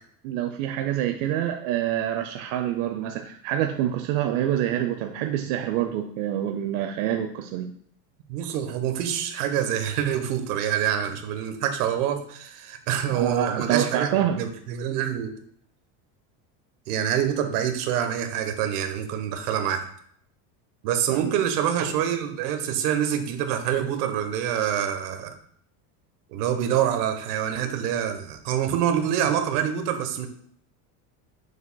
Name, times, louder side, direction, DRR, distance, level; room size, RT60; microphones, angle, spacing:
voice 1, 0.2-7.7 13.1-14.4 21.1-21.3, right 11 dB, 65° right, 5 dB, 0.7 m, -26 dB
voice 2, 8.3-14.1 14.4-15.3 16.9-19.8 20.8-25.3 26.3-30.3, right 9 dB, 80° right, 6 dB, 1.2 m, -26 dB
7.0 x 6.6 x 2.2 m, 0.63 s
supercardioid pair, 135°, 46 cm